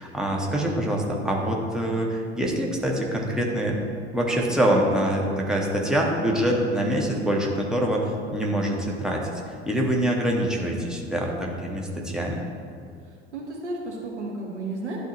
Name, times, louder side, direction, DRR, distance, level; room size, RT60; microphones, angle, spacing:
voice 1, 0.0-3.8 4.1-9.3 9.7-12.4, right 1 dB, ahead, -1 dB, 1.1 m, -25 dB
voice 2, 13.0-15.0, right 2 dB, 80° right, -1 dB, 1.2 m, -33 dB
11.5 x 4.0 x 3.0 m, 2.2 s
figure-of-eight pair, 75°, 34 cm